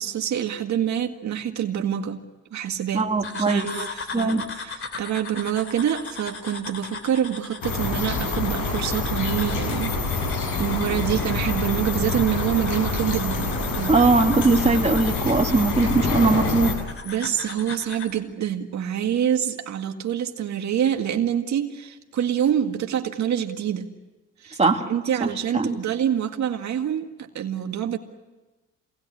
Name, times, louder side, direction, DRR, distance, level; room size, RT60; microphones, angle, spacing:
voice 1, 0.0-2.2 2.5-3.1 3.3-13.9 17.0-23.9 24.4-24.6 24.9-28.0, right 9 dB, 65° right, 4 dB, 2.0 m, -26 dB
voice 2, 2.9-3.7 4.1-4.5 13.9-16.8 24.6-24.9 25.2-25.3 25.5-25.8, right 3 dB, 20° right, 2 dB, 2.6 m, -20 dB
sound 1, 3.2-18.2, left 4 dB, 45° left, 3.1 m, -39 dB
sound 2, 7.6-16.7, left 3 dB, 85° left, 6.9 m, -26 dB
26.5 x 19.0 x 10.0 m, 1.2 s
cardioid pair, 90°, 30 cm